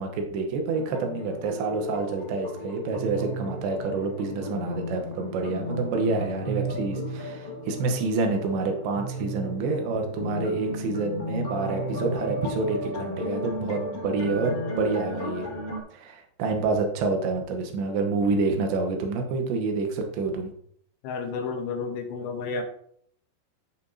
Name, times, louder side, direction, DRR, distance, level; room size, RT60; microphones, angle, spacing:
voice 1, 0.0-15.5 15.9-20.5, right 3 dB, 75° right, 3 dB, 3.3 m, -28 dB
sound 1, 0.7-15.8, equal, 15° left, 2.2 m, -34 dB
voice 2, 21.0-22.6, left 4 dB, 80° left, 4 dB, 3.4 m, -31 dB
14.0 x 5.2 x 2.8 m, 0.65 s
omnidirectional pair, 5.2 m